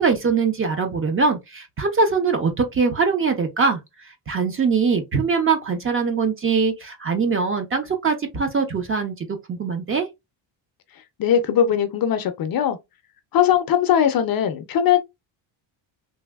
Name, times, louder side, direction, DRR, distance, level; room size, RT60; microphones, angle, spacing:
voice 1, 0.0-3.8 4.3-10.1, right 5 dB, 30° right, 0.5 m, -22 dB
voice 2, 11.2-12.8 13.3-15.0, left 9 dB, 50° left, 0.5 m, -20 dB
3.3 x 2.5 x 2.2 m
cardioid pair, 135°, 46 cm